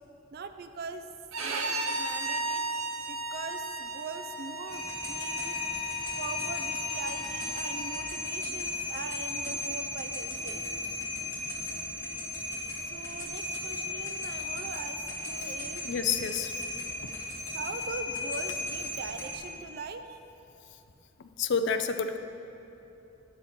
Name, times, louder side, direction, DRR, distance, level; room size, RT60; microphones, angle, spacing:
voice 1, 0.3-1.1 1.4-2.6 3.1-5.6 6.2-10.6 12.8-15.9 17.5-20.2, right 4 dB, 50° right, 9 dB, 0.4 m, -41 dB
Bowed string instrument, 1.3-8.1, right 2 dB, 85° right, 0.9 m, -36 dB
sound 1, 4.7-19.4, left 2 dB, 15° left, 1.2 m, -35 dB
voice 2, 15.8-16.6 21.4-22.2, left 5 dB, 60° left, 9 dB, 0.4 m, -29 dB
9.8 x 7.3 x 4.2 m, 3.0 s
head